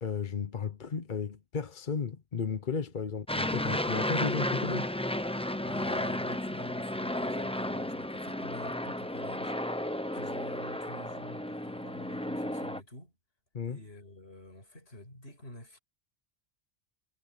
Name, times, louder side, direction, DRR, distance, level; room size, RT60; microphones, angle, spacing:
voice 1, 0.0-4.9 13.5-13.8, left 5 dB, 50° left, 1.1 m, -34 dB
Aircraft, 3.3-12.8, left 1 dB, 5° left, 0.7 m, -33 dB
voice 2, 5.6-9.5 10.1-13.2 13.7-15.8, left 1 dB, 70° left, 6.6 m, -48 dB
omnidirectional pair, 1.1 m